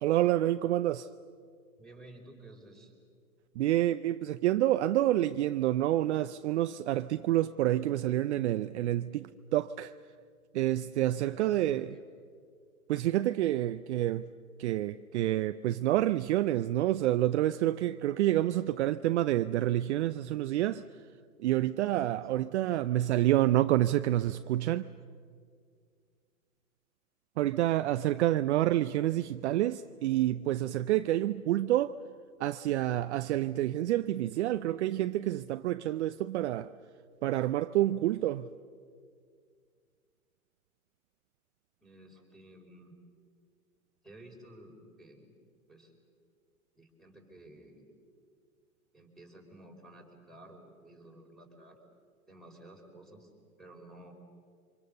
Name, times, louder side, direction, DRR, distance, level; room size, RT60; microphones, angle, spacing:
voice 1, 0.0-1.1 3.6-9.9 10.5-11.9 12.9-14.3 14.6-20.8 21.4-24.9 27.4-32.0 32.4-36.7 37.2-38.5, right 14 dB, 50° right, 0.7 m, -28 dB
voice 2, 1.8-2.9 11.2-12.1 22.2-22.4 41.8-43.0 44.0-45.3 45.7-45.9 46.7-47.9 48.9-51.8 52.3-53.3 53.6-54.1, right 1 dB, ahead, 5.0 m, -53 dB
30.0 x 25.5 x 6.7 m
hypercardioid pair, 125°, 44 cm